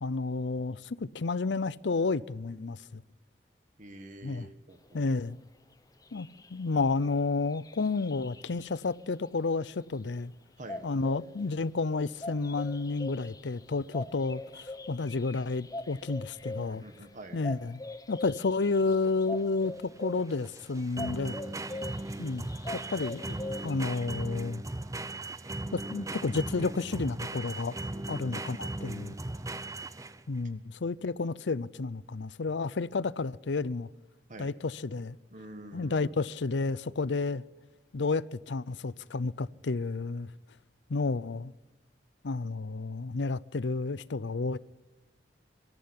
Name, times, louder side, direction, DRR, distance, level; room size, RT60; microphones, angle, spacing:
voice 1, 0.0-3.0 4.2-4.5 4.9-5.4 6.1-10.3 10.8-16.8 17.3-17.8 18.1-21.4 22.2-22.5 22.7-23.3 23.6-24.6 25.7-27.8 28.1-29.2 30.3-33.9 34.4-35.2 35.7-37.4 37.9-40.3 40.9-41.5 42.2-44.6, left 3 dB, 75° left, 0.6 m, -31 dB
voice 2, 3.8-5.0 10.6-10.8 16.6-17.4 27.9-28.4 34.3-34.5 35.3-36.3, right 1 dB, 45° right, 1.6 m, -47 dB
sound 1, 5.7-5.8 6.0-9.1 10.6-24.1, left 2 dB, 20° left, 0.8 m, -43 dB
sound 2, 18.7-30.4, right 2 dB, 20° right, 0.7 m, -38 dB
24.0 x 14.0 x 9.7 m
head